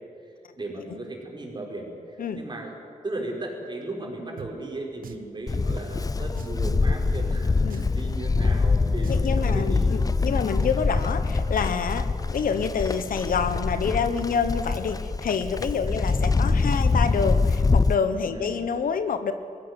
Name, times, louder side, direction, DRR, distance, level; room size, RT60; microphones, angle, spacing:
voice 1, 0.6-2.7 3.0-9.9 10.3-10.5 15.9-16.0 18.3-18.6, right 2 dB, 30° right, 0 dB, 5.0 m, -36 dB
Drum, 4.4-4.5 5.0-5.3 5.7-5.8 6.4-6.6 7.0-7.2 7.7-8.0 8.4-8.5 9.0-9.6, right 8 dB, 90° right, 1.2 m, -41 dB
Livestock farm animals working animals, 5.5-17.9, left 4 dB, 25° left, 0.6 m, -24 dB
voice 2, 9.1-19.3, left 6 dB, 80° left, 10 dB, 1.2 m, -27 dB
20.0 x 16.0 x 9.8 m, 2.4 s
cardioid pair, 85°, 14 cm